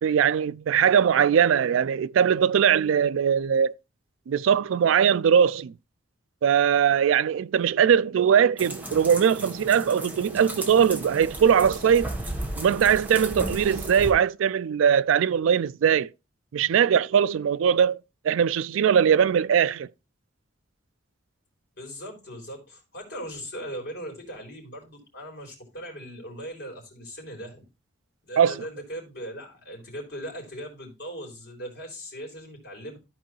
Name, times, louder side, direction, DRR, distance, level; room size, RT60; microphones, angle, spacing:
voice 1, 0.0-3.7 4.3-5.7 6.4-12.1 12.6-16.1 16.5-19.9 28.4-28.6, right 8 dB, 85° right, 0.3 m, -21 dB
sound 1, 8.6-14.1, right 1 dB, 10° right, 1.2 m, -35 dB
voice 2, 21.7-27.6 28.2-33.0, equal, 55° left, 3.7 m, -39 dB
13.5 x 4.6 x 3.1 m
head